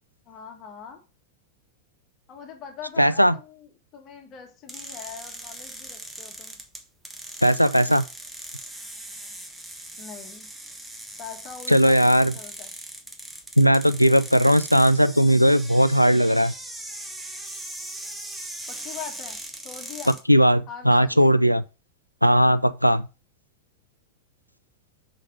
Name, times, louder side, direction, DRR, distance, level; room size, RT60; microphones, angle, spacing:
voice 1, 0.2-1.0 2.3-6.6 10.0-10.5 11.2-12.7 18.7-20.2 20.7-21.3, left 7 dB, 35° left, 1.6 m, -42 dB
voice 2, 3.0-3.3 7.4-8.0 11.7-12.3 13.6-16.5 20.3-21.6 22.2-23.1, equal, 90° left, 0.4 m, -18 dB
sound 1, 4.7-20.2, right 1 dB, 5° right, 1.4 m, -39 dB
6.4 x 5.1 x 5.0 m
figure-of-eight pair, 90°, 0 cm